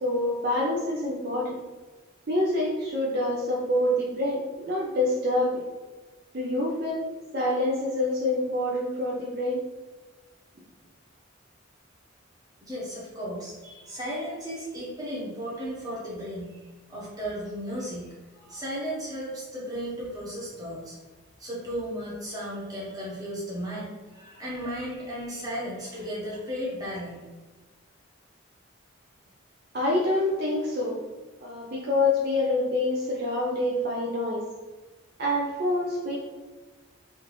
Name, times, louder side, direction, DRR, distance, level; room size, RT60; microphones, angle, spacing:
voice 1, 0.0-1.6 2.3-5.6 6.3-7.1 7.3-9.6 29.7-31.0 31.4-34.4 35.2-36.2, left 1 dB, 50° right, -4 dB, 0.5 m, -26 dB
voice 2, 12.6-18.1 18.3-21.0 21.4-27.2, equal, 20° right, -6 dB, 0.9 m, -35 dB
3.4 x 2.5 x 3.0 m, 1.3 s
head